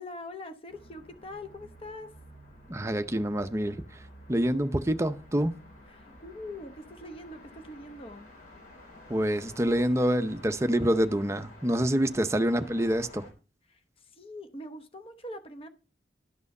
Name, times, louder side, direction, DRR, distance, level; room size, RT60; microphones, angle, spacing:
voice 1, 0.0-2.1 5.9-8.3 13.7-15.7, left 1 dB, 30° left, 0.8 m, -43 dB
sound 1, 0.7-13.3, left 1 dB, 50° left, 4.3 m, -51 dB
voice 2, 2.7-3.8 4.3-5.6 9.1-13.3, equal, 15° right, 0.6 m, -26 dB
12.0 x 6.1 x 5.3 m
head